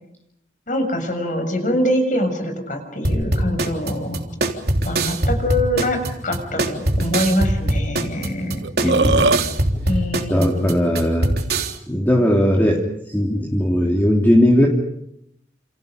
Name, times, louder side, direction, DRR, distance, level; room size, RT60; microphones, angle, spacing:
voice 1, 0.7-4.2 4.8-8.9 9.9-10.6, left 1 dB, 50° left, 6 dB, 7.0 m, -24 dB
sound 1, 3.0-11.7, right 1 dB, 60° right, 3.5 m, -22 dB
Burping eructation, 8.2-8.3 8.6-9.4, right 3 dB, 85° right, 1.1 m, -18 dB
voice 2, 8.8-9.6 9.9-10.0 10.3-11.3 11.9-14.7, equal, 10° left, -1 dB, 3.2 m, -18 dB
29.0 x 29.0 x 5.3 m, 0.76 s
head